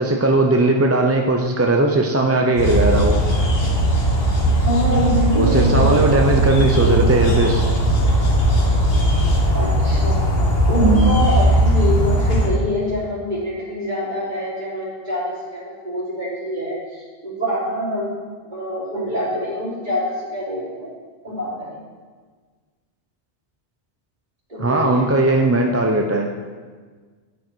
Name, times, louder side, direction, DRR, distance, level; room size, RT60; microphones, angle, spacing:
voice 1, 0.0-3.2 5.3-7.6 10.8-11.1 24.6-26.3, right 2 dB, 20° right, 2 dB, 0.4 m, -18 dB
sound 1, 2.6-12.5, right 1 dB, 65° left, 1.6 m, -18 dB
voice 2, 4.6-7.0 9.5-10.2 10.7-20.9 21.2-21.8 24.5-25.1, equal, 45° right, -7 dB, 3.2 m, -25 dB
9.4 x 7.7 x 4.5 m, 1.5 s
omnidirectional pair, 1.1 m